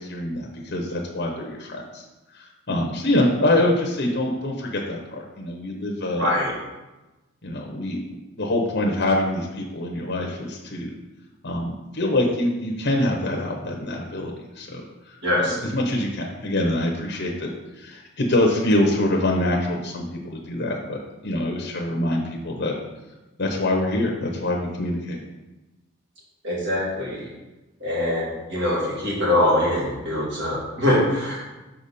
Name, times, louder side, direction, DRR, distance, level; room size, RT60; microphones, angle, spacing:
voice 1, 0.0-2.0 2.3-6.3 7.4-8.0 8.4-10.9 11.4-17.5 17.8-22.7 23.4-25.2, left 1 dB, 55° left, 0 dB, 0.8 m, -25 dB
voice 2, 6.2-6.5 15.2-15.5 26.4-27.3 27.8-31.4, left 1 dB, 60° right, -5 dB, 2.4 m, -23 dB
6.1 x 4.9 x 4.2 m, 1.1 s
head